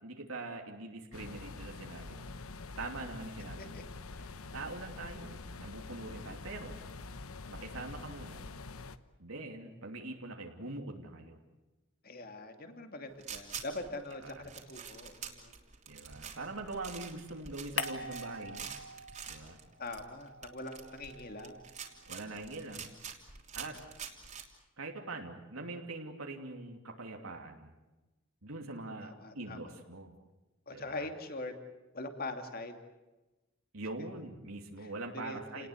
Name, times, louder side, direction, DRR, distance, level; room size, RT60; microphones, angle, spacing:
voice 1, 0.0-2.3 2.8-3.8 4.5-6.8 7.5-8.4 9.2-11.4 14.2-14.3 15.9-18.7 19.3-19.6 22.1-22.9 23.5-23.8 24.8-27.7 28.4-30.1 30.7-31.1 33.7-35.7, right 2 dB, 85° right, 2 dB, 2.9 m, -43 dB
sound 1, 1.1-9.0, left 3 dB, 85° left, 1.0 m, -46 dB
voice 2, 12.0-15.5 19.8-21.6 29.0-29.7 30.7-31.5 31.9-32.7 34.8-35.7, left 2 dB, 45° left, 6 dB, 2.6 m, -43 dB
sound 2, 13.2-24.4, right 7 dB, 35° right, 3.2 m, -46 dB
sound 3, 17.8-19.5 19.8-22.2, left 4 dB, 65° left, 2.1 m, -43 dB
30.0 x 19.5 x 8.3 m, 1.1 s
head